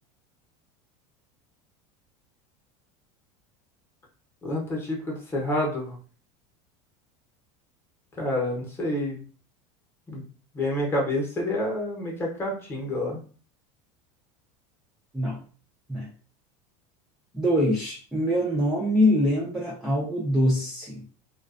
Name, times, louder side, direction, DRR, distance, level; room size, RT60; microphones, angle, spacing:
voice 1, 4.4-6.0 8.1-9.2 10.1-10.2 10.5-13.2, left 1 dB, 15° left, -2 dB, 0.8 m, -28 dB
voice 2, 17.3-21.1, equal, 5° right, -5 dB, 0.4 m, -24 dB
2.4 x 2.2 x 2.4 m, 0.39 s
supercardioid pair, 145°, 15 cm